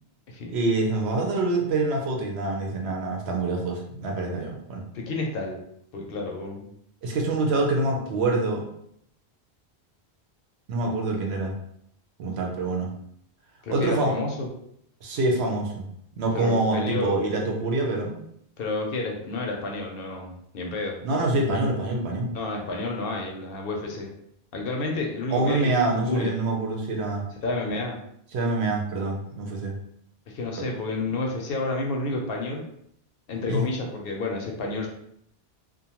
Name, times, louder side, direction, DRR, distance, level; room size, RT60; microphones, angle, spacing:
voice 1, 0.5-4.8 7.0-8.7 10.7-11.5 12.2-12.9 13.7-14.1 15.0-15.9 16.2-18.2 21.0-22.3 25.3-27.2 28.3-29.7 33.5-33.6, right 2 dB, 80° right, 0 dB, 0.9 m, -25 dB
voice 2, 4.9-5.6 5.9-6.7 13.6-14.5 16.3-17.2 18.6-21.0 22.3-24.1 24.5-26.3 27.4-28.0 30.3-32.6 33.3-34.9, left 2 dB, 65° left, 0 dB, 0.7 m, -30 dB
2.5 x 2.2 x 2.9 m, 0.72 s
omnidirectional pair, 1.1 m